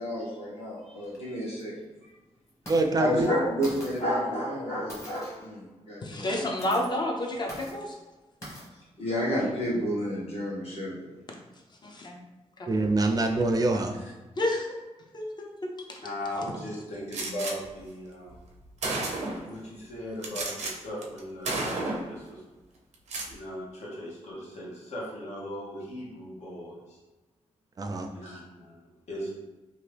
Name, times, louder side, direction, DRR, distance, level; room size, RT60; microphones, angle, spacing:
voice 1, 0.0-1.7 2.0-2.1 3.0-6.7 9.0-11.1, equal, 60° left, -6 dB, 1.2 m, -30 dB
sound 1, 1.0-1.2 1.6-1.7 2.5-2.8 3.2-3.3 3.6-4.0 4.9-5.5 6.4-6.9 7.5-7.8 8.4-8.7, equal, 25° left, 1.1 m, -43 dB
voice 2, 2.7-3.3 12.7-13.9 27.8-28.1, right 2 dB, 35° right, 4 dB, 0.4 m, -25 dB
voice 3, 6.0-8.0 11.8-12.2 12.6-12.7 14.4-14.8 15.1-16.0, left 1 dB, 40° left, 1 dB, 0.6 m, -30 dB
voice 4, 16.0-18.4 19.4-22.4 23.3-27.0 28.1-29.3, equal, 80° left, -5 dB, 1.1 m, -38 dB
Gunshot gunfire, 17.1-17.5 18.4-18.5 18.8-19.5 20.2-20.7 21.0-21.2 21.4-22.1 22.9-23.3, right 2 dB, 85° right, 0.6 m, -31 dB
2.9 x 2.5 x 3.3 m, 1.2 s
wide cardioid pair, 105°, 12 cm